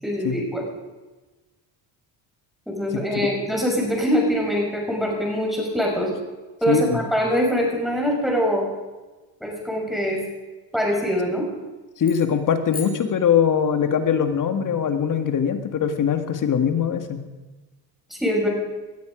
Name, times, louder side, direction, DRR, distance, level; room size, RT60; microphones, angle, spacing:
voice 1, 0.0-0.6 2.7-6.1 6.6-8.6 9.4-10.2 10.7-11.4 18.1-18.5, equal, ahead, -1 dB, 6.4 m, -23 dB
voice 2, 2.9-3.3 6.7-7.0 12.0-17.2, left 7 dB, 45° left, 8 dB, 1.9 m, -22 dB
sound 1, 12.0-13.9, left 5 dB, 20° left, 4.1 m, -40 dB
20.0 x 13.0 x 5.1 m, 1.2 s
cardioid pair, 100°, 43 cm